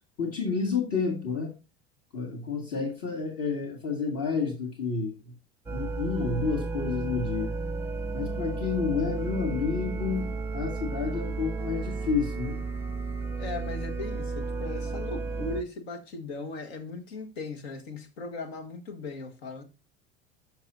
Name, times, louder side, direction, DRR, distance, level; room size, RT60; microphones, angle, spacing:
voice 1, 0.2-1.5 2.1-5.3 5.7-7.5 8.1-12.6, left 5 dB, 50° left, 2.0 m, -30 dB
sound 1, 5.7-15.6, right 3 dB, 10° right, 0.7 m, -33 dB
voice 2, 13.4-19.6, left 3 dB, 80° left, 1.5 m, -38 dB
11.5 x 6.0 x 2.6 m
hypercardioid pair, 80°, 31 cm